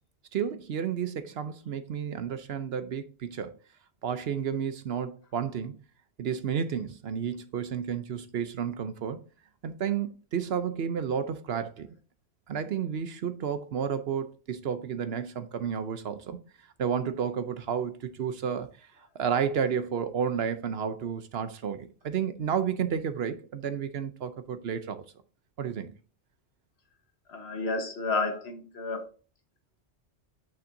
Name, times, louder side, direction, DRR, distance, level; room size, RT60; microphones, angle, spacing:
voice 1, 0.3-3.6 4.0-5.8 6.2-9.2 9.6-11.9 12.5-16.4 16.8-25.0 25.6-25.9, right 7 dB, 65° right, 0.9 m, -31 dB
voice 2, 27.3-29.0, left 3 dB, 65° left, 1.5 m, -31 dB
8.7 x 6.4 x 2.6 m
omnidirectional pair, 1.2 m